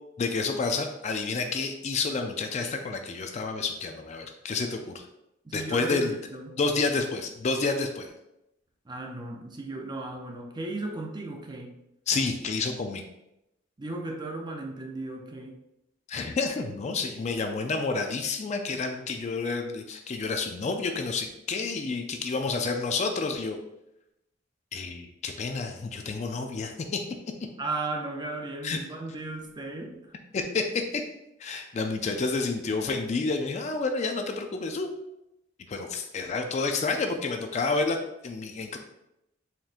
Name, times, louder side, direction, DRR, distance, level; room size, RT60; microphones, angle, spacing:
voice 1, 0.2-4.9 5.5-6.1 6.6-8.1 12.1-13.0 16.1-23.6 24.7-27.0 28.6-28.8 30.3-31.0 31.4-34.9 35.7-38.0 38.2-38.8, left 4 dB, 35° left, 5 dB, 0.3 m, -29 dB
voice 2, 5.4-6.6 8.9-11.7 13.8-15.6 27.6-30.0, right 2 dB, 25° right, 2 dB, 0.5 m, -35 dB
4.3 x 3.6 x 2.4 m, 0.86 s
head